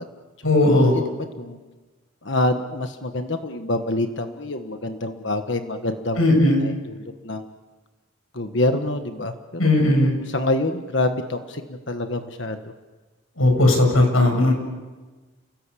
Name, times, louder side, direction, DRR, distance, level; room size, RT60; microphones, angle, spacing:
voice 1, 0.4-1.0 6.2-6.6 9.6-10.1 13.4-14.5, left 1 dB, 75° left, 3 dB, 7.7 m, -17 dB
voice 2, 2.2-6.2 6.6-7.4 8.3-9.3 9.6-12.6, left 2 dB, 55° left, 6 dB, 1.5 m, -26 dB
29.5 x 18.5 x 8.6 m, 1.3 s
head